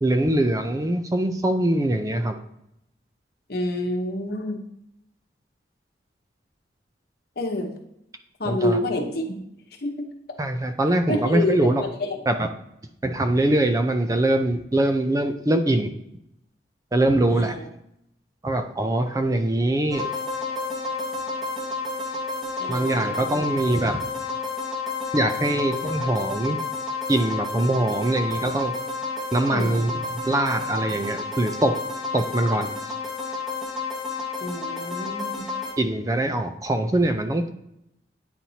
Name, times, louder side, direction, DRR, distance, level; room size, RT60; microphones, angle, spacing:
voice 1, 0.0-2.4 8.4-8.8 10.4-11.8 12.3-12.5 13.0-15.9 16.9-17.6 18.4-20.1 22.7-24.0 25.1-26.6 27.1-28.7 29.3-29.9 30.3-31.7 32.1-32.9 35.8-37.5, right 1 dB, 20° right, 7 dB, 0.4 m, -23 dB
voice 2, 3.5-4.6 7.4-7.7 8.4-9.4 9.8-10.1 11.1-12.2 17.3-17.6 22.6-23.4 29.5-30.0 34.4-35.4, left 1 dB, 55° left, 3 dB, 1.0 m, -28 dB
sound 1, 19.9-35.7, left 3 dB, ahead, 1.3 m, -31 dB
9.0 x 4.3 x 2.8 m, 0.80 s
head